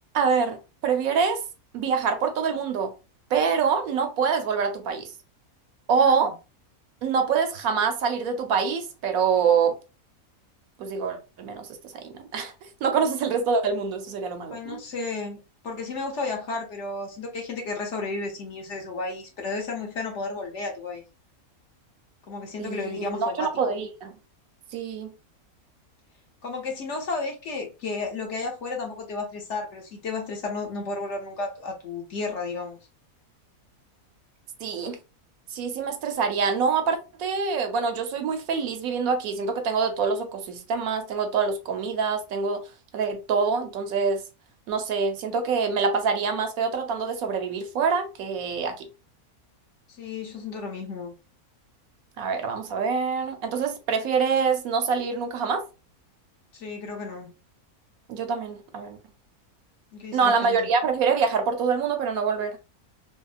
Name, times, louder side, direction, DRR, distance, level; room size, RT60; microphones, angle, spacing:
voice 1, 0.1-1.4 1.7-2.9 3.3-5.1 5.9-6.3 7.0-9.7 10.8-11.7 11.9-12.5 12.8-14.8 22.6-24.1 24.7-25.1 34.6-35.0 35.5-42.6 42.9-44.2 44.7-48.9 52.2-55.6 58.1-59.0 60.1-62.6, right 5 dB, 75° right, 1.0 m, -25 dB
voice 2, 6.0-6.3 14.5-21.0 22.3-23.7 26.4-32.8 49.9-51.1 56.5-57.3 59.9-60.7, left 3 dB, 60° left, 1.0 m, -33 dB
3.5 x 2.0 x 2.3 m
omnidirectional pair, 1.6 m